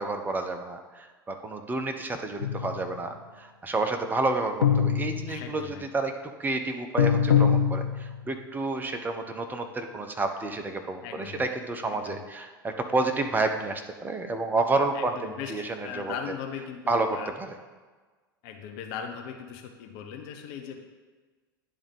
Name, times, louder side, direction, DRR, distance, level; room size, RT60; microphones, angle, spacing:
voice 1, 0.0-16.1 16.9-17.5, right 3 dB, 15° right, 5 dB, 0.8 m, -30 dB
sound 1, 2.4-3.0 4.6-5.6 7.0-8.3, left 7 dB, 80° left, 0.6 m, -23 dB
voice 2, 5.3-5.8 11.0-11.5 11.9-12.2 14.9-15.5 15.8-17.3 18.4-20.8, left 8 dB, 50° left, 4 dB, 0.8 m, -39 dB
10.0 x 3.6 x 5.4 m, 1.3 s
figure-of-eight pair, 80°, 12 cm